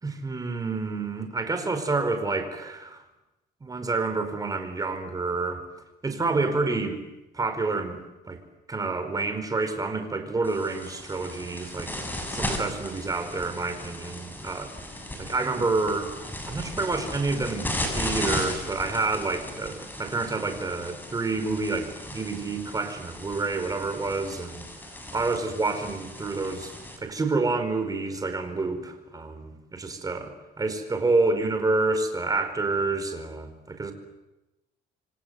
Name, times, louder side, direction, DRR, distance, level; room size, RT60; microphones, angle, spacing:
voice 1, 0.0-3.0 3.6-5.6 6.0-7.0 7.3-8.4 8.7-11.9 12.3-14.7 15.2-16.1 16.5-24.7 25.1-26.7 27.0-33.9, right 3 dB, 20° right, 7 dB, 4.9 m, -28 dB
sound 1, 10.4-27.0, left 1 dB, 10° left, 7.2 m, -36 dB
28.0 x 24.5 x 8.2 m, 0.99 s
cardioid pair, 110°, 17 cm